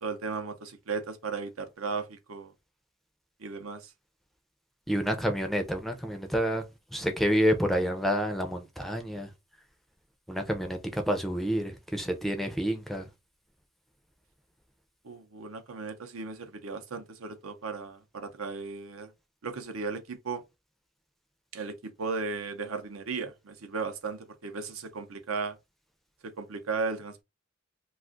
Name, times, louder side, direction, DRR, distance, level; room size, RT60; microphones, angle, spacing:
voice 1, 0.0-2.5 3.4-3.9 15.0-19.1 19.4-20.4 21.5-25.6 26.2-27.2, right 4 dB, 80° right, 0.6 m, -36 dB
voice 2, 4.9-6.6 6.9-9.3 10.3-13.1, equal, ahead, 0.4 m, -28 dB
2.4 x 2.3 x 3.7 m
head